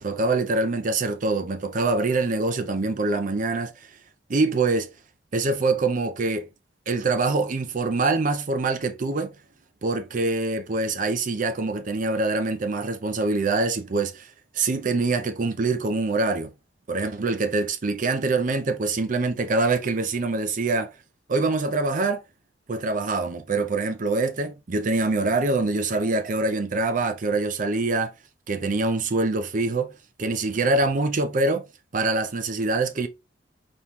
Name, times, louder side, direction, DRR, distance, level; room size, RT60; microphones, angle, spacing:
voice 1, 0.0-3.7 4.3-4.9 5.3-6.5 6.9-9.3 9.8-16.5 16.9-20.9 21.3-22.2 22.7-28.1 28.5-29.9 30.2-31.6 31.9-33.1, right 3 dB, 45° right, 0.5 m, -24 dB
4.3 x 3.1 x 3.4 m
head